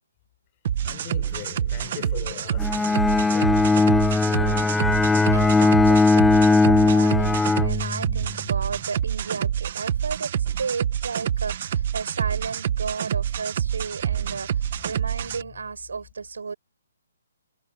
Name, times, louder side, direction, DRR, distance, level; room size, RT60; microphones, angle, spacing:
sound 1, 0.6-15.4, right 9 dB, 35° right, 0.9 m, -27 dB
voice 1, 0.8-3.8 15.3-15.6, left 23 dB, 20° left, 6.4 m, -40 dB
Bowed string instrument, 2.6-8.4, left 3 dB, 5° left, 0.4 m, -19 dB
voice 2, 4.3-4.7 5.3-16.5, right 5 dB, 85° right, 6.8 m, -33 dB
hypercardioid pair, 175°, 0 cm